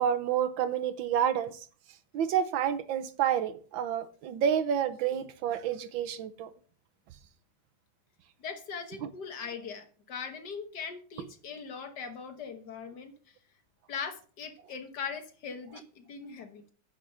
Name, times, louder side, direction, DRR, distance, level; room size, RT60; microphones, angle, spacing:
voice 1, 0.0-1.6 2.1-6.5 9.0-9.1, right 9 dB, 70° right, 1.4 m, -29 dB
voice 2, 8.4-13.3 13.9-16.7, left 6 dB, 55° left, 1.5 m, -40 dB
9.6 x 6.0 x 5.7 m
omnidirectional pair, 2.4 m